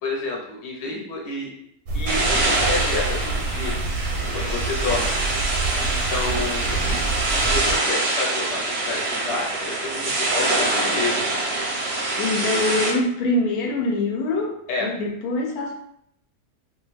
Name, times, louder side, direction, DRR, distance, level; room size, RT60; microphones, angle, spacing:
voice 1, 0.0-1.5 1.9-3.8 4.3-5.2 5.9-6.8 7.3-11.2 12.2-12.6 14.7-14.9, left 3 dB, 55° left, -1 dB, 0.9 m, -29 dB
sound 1, 1.9-7.8, right 3 dB, 85° right, 1.1 m, -27 dB
sound 2, 2.1-12.9, right 2 dB, 60° right, 0.7 m, -25 dB
voice 2, 12.2-14.6 14.8-15.7, left 2 dB, 85° left, 2 dB, 1.1 m, -24 dB
2.5 x 2.3 x 3.2 m, 0.72 s
omnidirectional pair, 1.5 m